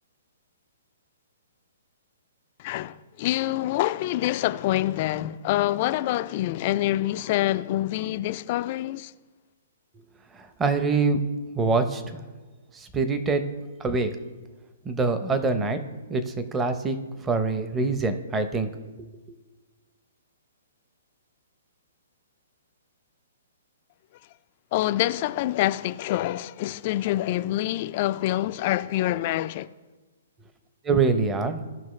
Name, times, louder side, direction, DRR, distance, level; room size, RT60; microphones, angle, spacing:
voice 1, 2.6-9.1 24.7-29.7, left 15 dB, 40° left, 0.4 m, -26 dB
voice 2, 10.3-11.2 11.5-12.0 12.7-13.4 13.8-14.1 14.8-15.8 16.1-17.0 17.2-18.7 30.8-31.6, right 4 dB, 15° right, 0.7 m, -24 dB
16.5 x 5.6 x 3.2 m
hypercardioid pair, 150°, 0 cm